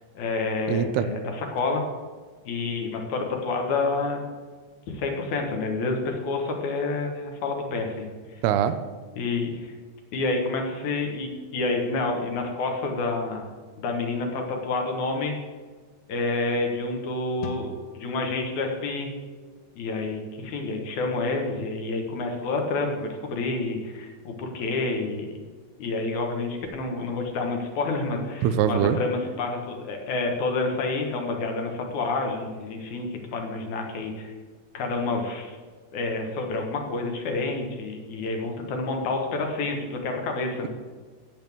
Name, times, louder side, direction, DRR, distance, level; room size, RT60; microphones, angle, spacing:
voice 1, 0.1-1.9 2.5-4.2 4.9-8.4 9.2-9.7 10.1-13.5 13.8-15.3 16.1-19.1 19.7-25.3 25.8-34.3 34.7-35.6 35.9-40.7, left 3 dB, 60° left, 2 dB, 2.2 m, -28 dB
voice 2, 0.7-1.1 8.4-8.8 28.4-29.0, right 9 dB, 85° right, 10 dB, 2.5 m, -22 dB
sound 1, 17.4-20.8, left 5 dB, 90° left, 3.2 m, -42 dB
16.5 x 7.9 x 3.6 m, 1.5 s
omnidirectional pair, 4.8 m